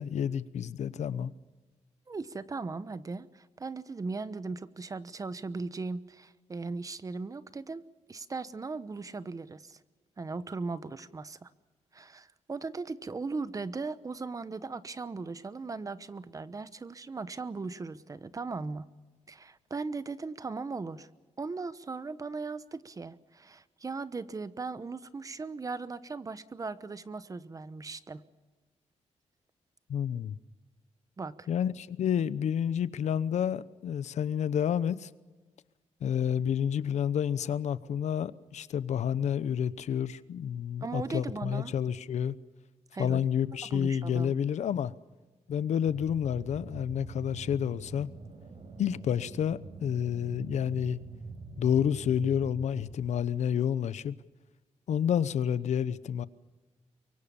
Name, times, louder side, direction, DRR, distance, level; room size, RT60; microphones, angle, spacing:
voice 1, 0.0-1.3 29.9-30.4 31.5-35.1 36.0-42.4 43.0-44.9 45.5-48.1 48.8-51.0 51.6-54.1 54.9-56.3, left 8 dB, 85° left, 0.9 m, -29 dB
voice 2, 2.1-7.8 8.1-9.8 10.2-11.5 11.9-18.9 19.3-21.1 21.4-28.2 31.2-31.5 40.8-41.7 42.9-43.2 43.7-44.4, right 4 dB, 30° right, 1.0 m, -38 dB
sound 1, 45.8-53.2, right 3 dB, 55° right, 5.0 m, -45 dB
24.0 x 23.5 x 7.0 m
wide cardioid pair, 130°, 12 cm